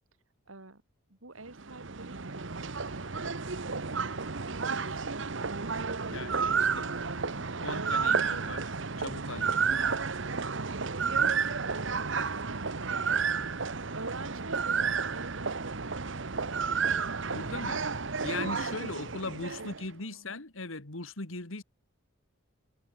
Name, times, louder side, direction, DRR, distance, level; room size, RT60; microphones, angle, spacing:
voice 1, 0.5-0.8 1.1-5.3 6.0-6.4 7.4-8.7 11.7-13.3 13.9-17.6 19.6-20.4, right 2 dB, 80° right, 3.1 m, -47 dB
sound 1, 1.5-19.9, right 5 dB, 65° right, 1.1 m, -31 dB
voice 2, 6.1-8.6 9.0-9.9 17.3-17.8 18.2-21.6, left 3 dB, 75° left, 2.2 m, -39 dB
head